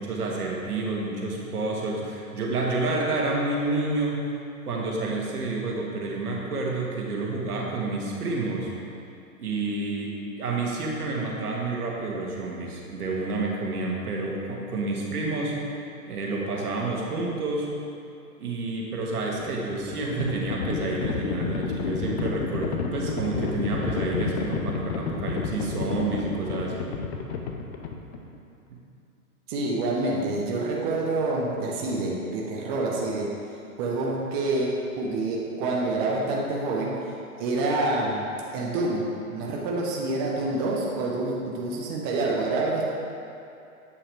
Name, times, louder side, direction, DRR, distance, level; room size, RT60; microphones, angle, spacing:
voice 1, 0.0-4.2 4.7-8.7 9.4-15.5 16.0-17.7 18.4-26.9, right 3 dB, 80° right, -2 dB, 1.6 m, -29 dB
Livestock farm animals working animals, 19.3-28.4, left 5 dB, 45° left, 0.7 m, -31 dB
voice 2, 29.5-33.3 33.8-37.1 37.4-42.8, right 2 dB, 35° right, -3 dB, 0.9 m, -27 dB
8.2 x 5.8 x 3.3 m, 2.6 s
hypercardioid pair, 125°, 45 cm